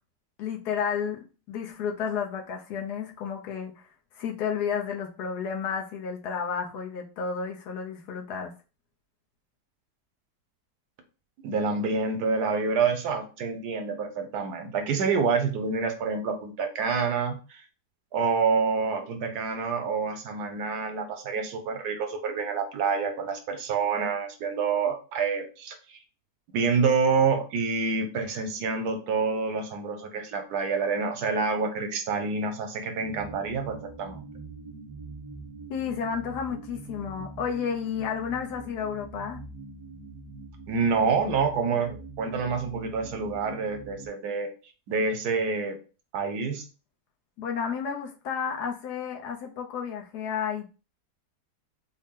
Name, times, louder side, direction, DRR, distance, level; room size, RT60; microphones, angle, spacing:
voice 1, 0.4-3.9 4.1-8.5 35.7-39.4 47.4-50.7, left 7 dB, 70° left, 1.3 m, -32 dB
voice 2, 11.4-17.6 18.1-26.0 26.5-34.2 40.7-44.5 44.9-45.8 46.1-46.7, right 5 dB, 70° right, 1.2 m, -27 dB
sound 1, 33.0-44.1, right 3 dB, 40° right, 0.7 m, -44 dB
4.0 x 2.1 x 3.6 m
omnidirectional pair, 1.8 m